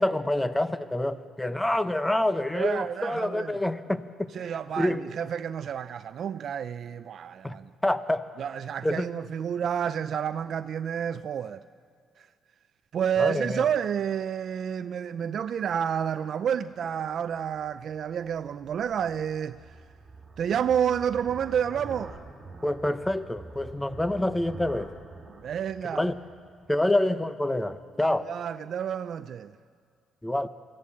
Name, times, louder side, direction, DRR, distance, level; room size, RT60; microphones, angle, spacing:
voice 1, 0.0-5.0 7.4-7.6 7.8-8.2 8.8-9.1 13.2-13.6 22.6-24.9 25.9-26.1 26.7-28.3 30.2-30.5, left 1 dB, 10° left, 0.9 m, -27 dB
voice 2, 2.5-3.6 4.3-7.7 8.4-11.6 12.2-12.3 12.9-19.8 20.4-22.2 25.4-26.1 28.1-29.5, right 8 dB, 60° right, 0.5 m, -30 dB
Ovni machine, 17.3-26.8, right 3 dB, 25° right, 5.7 m, -46 dB
23.5 x 15.5 x 8.5 m
cardioid pair, 90°, 0 cm